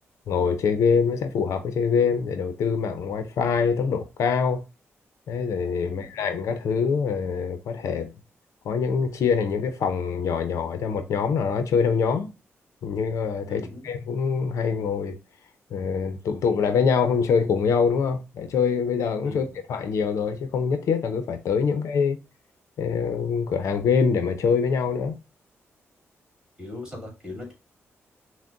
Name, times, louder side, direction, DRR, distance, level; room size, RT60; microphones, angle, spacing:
voice 1, 0.3-4.6 5.3-8.1 8.6-12.3 12.8-15.2 15.7-22.2 22.8-25.2, left 6 dB, 80° left, 0.6 m, -24 dB
voice 2, 13.5-13.9 19.2-19.5 26.6-27.5, left 2 dB, 10° right, 2.1 m, -39 dB
5.9 x 2.1 x 2.5 m
cardioid pair, 110°, 5 cm